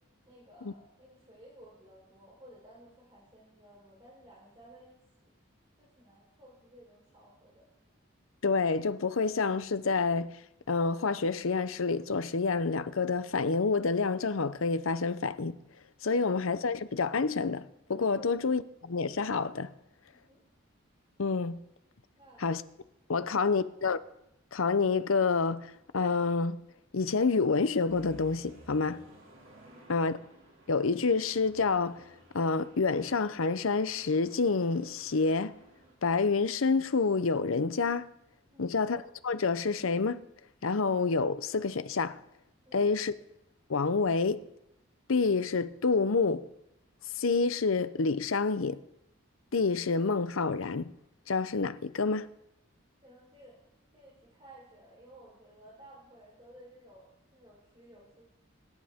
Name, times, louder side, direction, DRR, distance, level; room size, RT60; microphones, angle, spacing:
voice 1, 0.3-5.3 5.8-7.7 18.1-18.4 20.1-20.4 22.1-22.4 23.2-23.6 28.9-29.1 29.7-29.9 38.5-38.7 42.6-42.9 53.0-53.6 53.9-58.3, right 1 dB, 25° right, 4.2 m, -55 dB
voice 2, 8.4-10.3 10.7-15.5 16.0-19.7 21.2-21.6 22.4-22.6 23.1-24.0 24.5-26.6 26.9-29.0 29.9-30.1 30.7-32.0 32.3-35.5 36.0-38.1 38.6-40.2 40.6-42.2 42.7-43.1 43.7-44.5 45.1-46.5 47.2-48.8 49.5-50.9 51.3-52.3, left 4 dB, 75° left, 0.7 m, -28 dB
sound 1, 27.9-35.9, right 1 dB, 70° right, 2.9 m, -56 dB
25.0 x 11.0 x 3.6 m
head